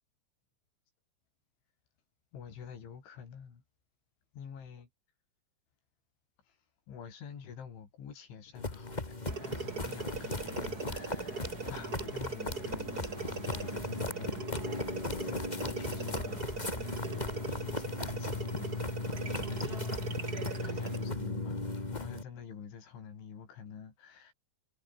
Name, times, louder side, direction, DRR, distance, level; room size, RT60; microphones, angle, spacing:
voice 1, 2.3-3.6 4.3-4.9 6.9-14.6 15.1-16.8 17.1-24.3, left 7 dB, 90° left, 7.0 m, -48 dB
sound 1, 8.5-22.2, left 2 dB, 20° left, 1.0 m, -37 dB
sound 2, 9.3-21.1, right 4 dB, 25° right, 2.3 m, -40 dB
omnidirectional pair, 5.3 m